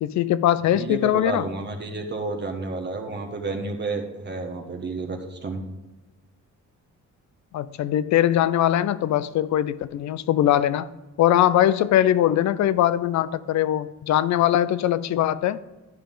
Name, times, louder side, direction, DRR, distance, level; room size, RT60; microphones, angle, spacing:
voice 1, 0.0-1.5 7.5-10.9 11.2-15.6, left 12 dB, 65° left, 16 dB, 0.5 m, -21 dB
voice 2, 0.6-5.6, right 3 dB, 35° right, 3 dB, 1.3 m, -31 dB
11.5 x 5.2 x 3.7 m, 1.1 s
cardioid pair, 90°, 30 cm